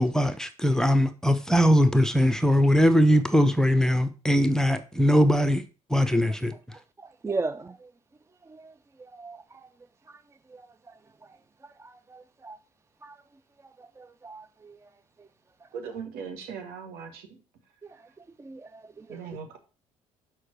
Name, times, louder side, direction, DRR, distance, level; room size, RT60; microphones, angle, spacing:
voice 1, 0.0-5.6 5.9-6.5, equal, 5° left, 0.9 m, -21 dB
voice 2, 7.0-7.9 8.5-8.7 9.0-9.4 10.1-10.2 10.5-10.6 11.8-12.6 13.0-13.2 13.8-14.8 17.8-18.0 18.4-19.4, right 3 dB, 15° right, 0.4 m, -37 dB
voice 3, 15.7-17.3 19.1-19.6, right 6 dB, 65° right, 1.9 m, -38 dB
6.4 x 5.6 x 6.1 m
figure-of-eight pair, 55°, 18 cm